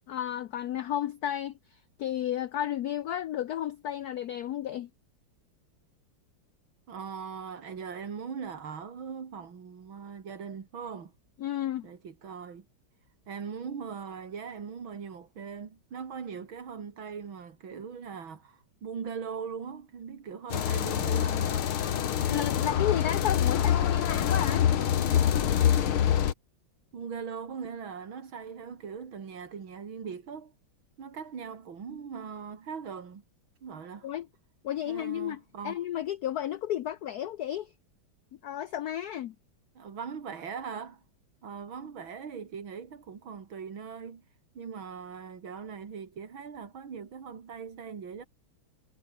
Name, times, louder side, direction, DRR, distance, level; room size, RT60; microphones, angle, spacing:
voice 1, 0.1-4.9 11.4-11.9 22.3-24.7 34.0-34.3 34.6-37.7 38.4-39.3, left 11 dB, 65° left, 1.0 m, -32 dB
voice 2, 6.9-11.1 11.8-12.7 13.3-21.8 26.9-30.5 31.0-33.2 33.6-34.1 34.9-35.8 39.7-41.0 41.4-44.2 44.5-48.2, right 6 dB, 75° right, 3.1 m, -40 dB
sound 1, 20.5-26.3, left 9 dB, 85° left, 2.3 m, -25 dB
omnidirectional pair, 2.2 m